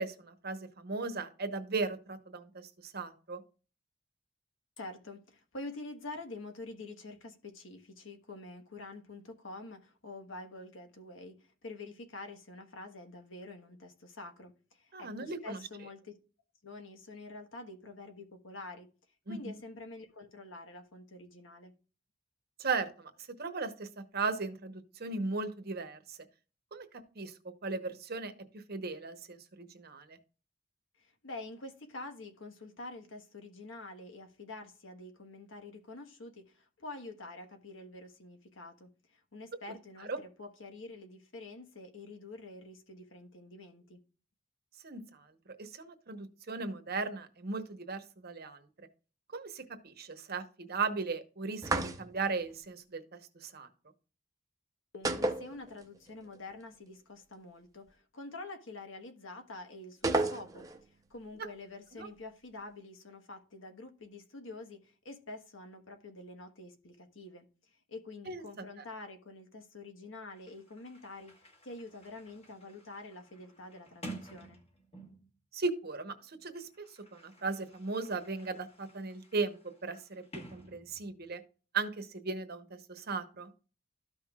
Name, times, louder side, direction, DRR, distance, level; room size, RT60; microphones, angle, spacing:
voice 1, 0.0-3.4 14.9-15.6 19.3-19.6 22.6-23.1 23.4-26.2 26.7-27.3 27.6-30.2 40.1-40.2 44.8-45.3 45.6-48.9 49.3-53.7 62.0-62.1 68.3-68.4 75.5-76.9 77.1-80.2 80.5-81.4 81.7-83.5, right 4 dB, 55° right, 1.0 m, -37 dB
voice 2, 4.8-16.2 16.6-18.9 19.3-21.7 31.0-44.0 54.9-67.4 67.9-74.6, left 2 dB, 85° left, 1.3 m, -47 dB
sound 1, 51.6-52.3 55.0-56.1 56.4-56.5 60.0-60.8, right 2 dB, 20° right, 0.7 m, -32 dB
Sliding door, 70.0-70.1 70.3-75.4 76.3-81.3, right 1 dB, 30° left, 1.4 m, -52 dB
13.5 x 5.7 x 2.4 m
head